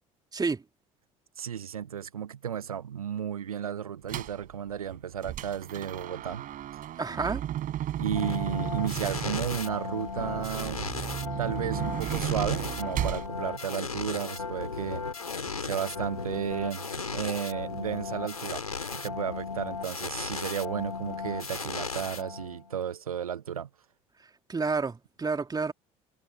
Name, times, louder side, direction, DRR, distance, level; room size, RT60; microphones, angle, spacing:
voice 1, 0.3-0.6 7.0-7.4 24.5-25.7, right 4 dB, 20° right, 2.7 m, -29 dB
voice 2, 1.4-6.4 8.0-10.9 11.4-15.0 15.6-18.7 18.9-23.7, right 9 dB, 80° right, 0.8 m, -33 dB
sound 1, 4.1-4.4 4.9-13.3, right 12 dB, 50° right, 4.6 m, -34 dB
sound 2, 8.1-22.7, left 5 dB, 85° left, 3.2 m, -36 dB
figure-of-eight pair, 55°, 18 cm